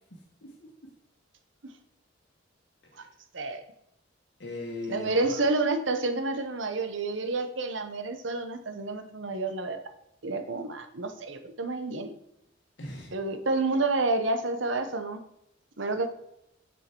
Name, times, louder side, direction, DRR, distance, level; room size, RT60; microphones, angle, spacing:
voice 1, 0.1-0.7 2.9-3.1 4.4-5.4 12.8-13.1, left 2 dB, 60° left, -2 dB, 1.4 m, -39 dB
voice 2, 4.9-9.8 10.2-12.1 13.1-15.2 15.8-16.1, right 3 dB, 70° right, 8 dB, 0.9 m, -29 dB
6.7 x 6.3 x 4.5 m, 0.80 s
head